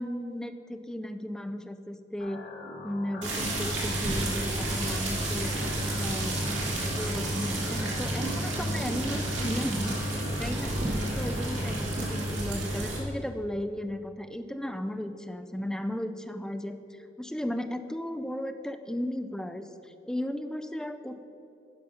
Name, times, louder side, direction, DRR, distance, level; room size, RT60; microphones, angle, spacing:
voice 1, 0.0-2.4 2.8-5.6 6.0-6.6 7.0-10.8 11.1-16.8 17.2-21.2, left 1 dB, 5° left, 8 dB, 0.4 m, -35 dB
sound 1, 2.2-12.2, left 3 dB, 75° left, 1.4 m, -43 dB
sound 2, 3.2-13.0, right 1 dB, 90° right, 2.3 m, -30 dB
11.5 x 5.1 x 5.5 m, 2.9 s
head